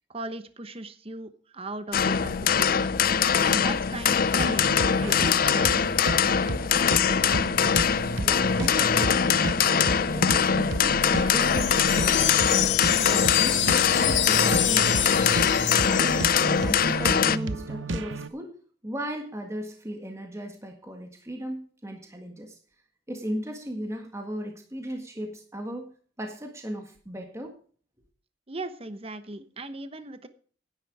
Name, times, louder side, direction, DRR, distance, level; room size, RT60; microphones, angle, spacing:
voice 1, 0.1-5.8 28.5-30.3, right 2 dB, 30° right, 11 dB, 1.0 m, -38 dB
sound 1, 1.9-17.4, left 7 dB, 50° left, 0.5 m, -23 dB
sound 2, 4.4-18.3, right 2 dB, 90° right, 0.9 m, -33 dB
voice 2, 8.2-12.5 13.0-16.1 16.6-18.6 18.8-22.5 23.1-25.9 26.2-27.5, equal, 15° right, 3 dB, 1.7 m, -37 dB
sound 3, 11.4-16.8, left 11 dB, 85° left, 1.6 m, -27 dB
11.0 x 10.5 x 4.8 m, 0.43 s
head